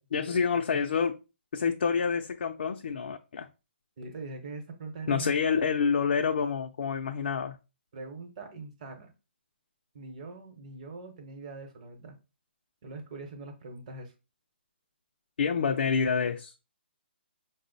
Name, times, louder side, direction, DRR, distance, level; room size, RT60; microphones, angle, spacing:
voice 1, 0.1-1.2 1.5-3.5 5.1-7.6 15.4-16.5, left 6 dB, 60° left, 0.4 m, -27 dB
voice 2, 4.0-5.7 7.9-9.1 9.9-12.2 12.8-14.1, right 3 dB, 35° right, 0.8 m, -42 dB
4.9 x 2.0 x 3.9 m
hypercardioid pair, 170°, 6 cm